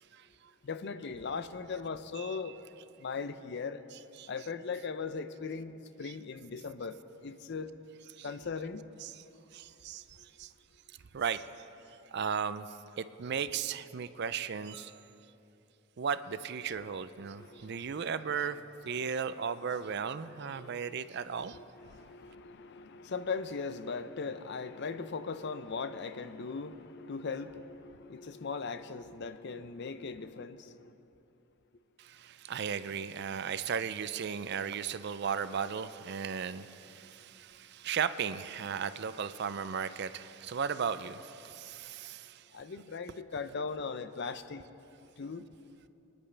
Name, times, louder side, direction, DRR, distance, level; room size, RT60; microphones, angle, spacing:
voice 1, 0.6-2.6 3.0-3.8 4.3-7.0 7.2-7.7 8.2-8.8 17.4-18.0 18.9-19.0 20.5-20.9 21.4-30.9 42.5-44.6 45.2-45.4, left 5 dB, 55° left, 11 dB, 0.5 m, -39 dB
voice 2, 2.2-2.5 4.2-4.3 6.0-6.1 8.2-8.3 9.0-9.2 9.5-10.5 11.1-11.5 12.1-12.7 13.0-15.0 16.0-18.6 18.8-21.6 32.0-42.4, right 7 dB, 50° right, 13 dB, 0.4 m, -36 dB
25.5 x 10.5 x 3.3 m, 2.8 s
head